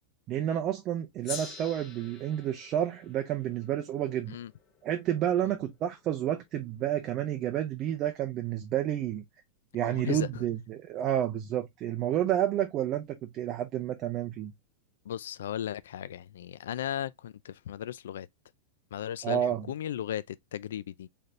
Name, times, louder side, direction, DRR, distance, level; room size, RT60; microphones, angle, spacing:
voice 1, 0.3-4.4 4.8-9.2 9.7-14.5 19.2-19.6, right 11 dB, 25° right, 0.5 m, -30 dB
Gong, 1.2-6.0, left 6 dB, 20° left, 0.8 m, -46 dB
voice 2, 9.9-10.3 15.1-18.3 18.9-21.1, left 10 dB, 90° left, 0.3 m, -36 dB
4.2 x 3.3 x 2.4 m
supercardioid pair, 175°, 0 cm